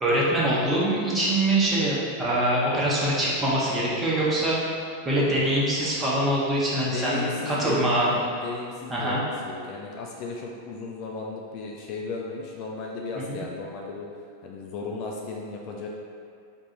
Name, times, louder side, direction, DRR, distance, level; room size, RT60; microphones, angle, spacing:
voice 1, 0.0-4.8 5.0-8.1 8.9-9.2 13.3-13.4, right 1 dB, 15° right, -6 dB, 1.1 m, -24 dB
voice 2, 6.8-14.1 14.4-15.9, left 3 dB, 40° left, 0 dB, 0.4 m, -35 dB
4.6 x 2.5 x 4.3 m, 2.3 s
figure-of-eight pair, 90°, 0 cm